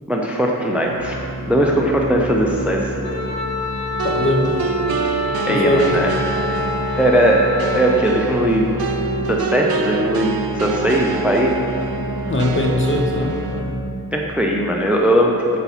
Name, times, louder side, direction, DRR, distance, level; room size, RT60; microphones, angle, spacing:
voice 1, 0.1-2.9 5.5-6.1 7.0-7.5 7.8-8.7 9.3-10.3 10.5-11.5 14.1-15.4, right 1 dB, 5° right, 0 dB, 0.5 m, -18 dB
sound 1, 0.8-14.2, equal, 55° right, 1.4 m, -30 dB
Wind instrument woodwind instrument, 3.0-8.2, left 4 dB, 85° left, 0.9 m, -27 dB
voice 2, 4.0-4.6 5.5-6.0 12.3-13.3, equal, 35° left, 0 dB, 0.7 m, -20 dB
sound 2, 4.0-13.6, right 4 dB, 80° right, 0.5 m, -26 dB
6.9 x 4.1 x 4.1 m, 2.7 s
wide cardioid pair, 95°, 36 cm